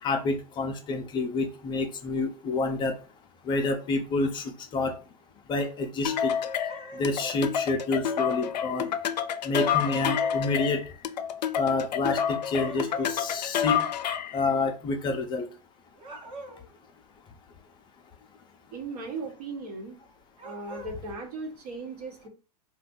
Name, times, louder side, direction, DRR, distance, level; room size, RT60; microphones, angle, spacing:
voice 1, 0.0-3.0 3.4-5.0 5.5-6.4 6.9-8.9 9.4-10.9 11.6-13.9 14.3-15.5, left 3 dB, 20° left, 4 dB, 0.4 m, -28 dB
sound 1, 6.0-14.4, left 8 dB, 80° left, 0.4 m, -29 dB
sound 2, 6.7-7.5 9.6-10.5 12.6-13.2 15.9-16.7 20.4-20.9, right 1 dB, 25° right, 0.7 m, -43 dB
voice 2, 18.7-20.0 20.4-22.3, right 3 dB, 65° right, 3 dB, 1.1 m, -37 dB
2.5 x 2.3 x 3.7 m, 0.35 s
hypercardioid pair, 120°, 21 cm